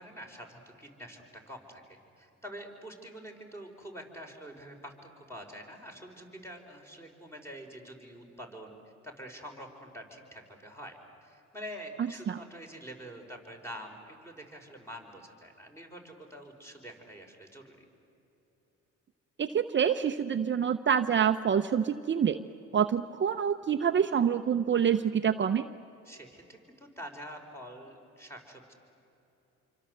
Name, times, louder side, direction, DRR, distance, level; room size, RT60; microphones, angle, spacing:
voice 1, 0.0-8.8 9.0-17.9 26.0-28.7, equal, 10° left, 2 dB, 5.2 m, -46 dB
voice 2, 19.4-22.4 22.7-25.7, right 8 dB, 40° right, 8 dB, 0.8 m, -26 dB
27.0 x 24.5 x 8.1 m, 3.0 s
cardioid pair, 90°, 30 cm